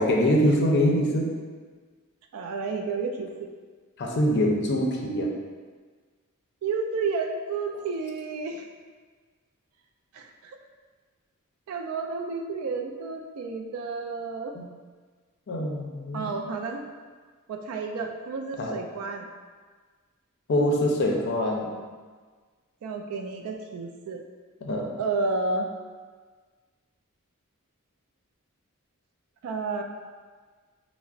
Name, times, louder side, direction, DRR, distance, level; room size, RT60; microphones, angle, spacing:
voice 1, 0.0-1.3 4.0-5.3 14.5-14.6 15.5-16.3 18.6-18.8 20.5-21.7 24.6-24.9, equal, 55° left, 0 dB, 0.5 m, -24 dB
voice 2, 2.3-3.5 6.6-8.7 10.1-10.6 11.7-14.5 16.1-16.9 17.5-19.3 22.8-24.2 25.0-25.7 29.4-29.8, right 4 dB, 70° right, 4 dB, 0.3 m, -31 dB
5.5 x 2.0 x 2.4 m, 1.5 s
head